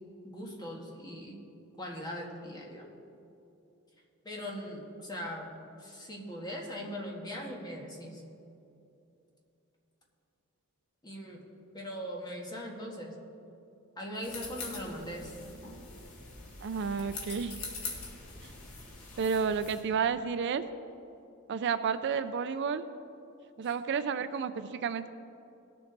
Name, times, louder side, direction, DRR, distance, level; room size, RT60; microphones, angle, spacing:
voice 1, 0.2-1.4 1.8-2.9 4.2-5.5 5.8-8.2 11.0-11.4 11.7-13.1 14.0-15.3, equal, 20° left, -1 dB, 1.6 m, -40 dB
sound 1, 14.2-19.8, left 3 dB, 85° left, 2.0 m, -43 dB
voice 2, 16.6-17.6 18.4-18.5 19.2-20.6 21.5-22.8 23.6-25.1, right 6 dB, 55° right, 11 dB, 0.4 m, -31 dB
18.5 x 6.9 x 4.0 m, 2.7 s
head